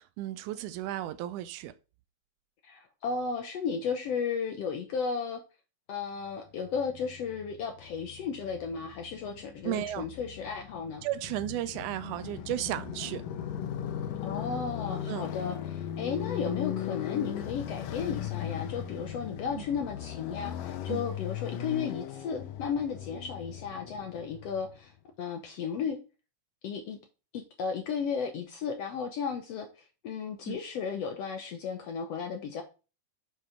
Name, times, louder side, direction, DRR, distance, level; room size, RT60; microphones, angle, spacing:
voice 1, 0.0-1.7 9.7-10.1 11.0-13.2 15.1-15.3 19.6-19.7 20.9-21.0 30.5-30.6, right 13 dB, 80° right, 1.9 m, -34 dB
voice 2, 2.6-5.4 5.9-11.0 14.2-26.0 26.6-27.0 27.3-32.6, left 6 dB, 70° left, 1.6 m, -34 dB
Motorcycle, 6.6-24.8, left 10 dB, 90° left, 2.5 m, -38 dB
6.8 x 4.9 x 5.7 m
omnidirectional pair, 3.7 m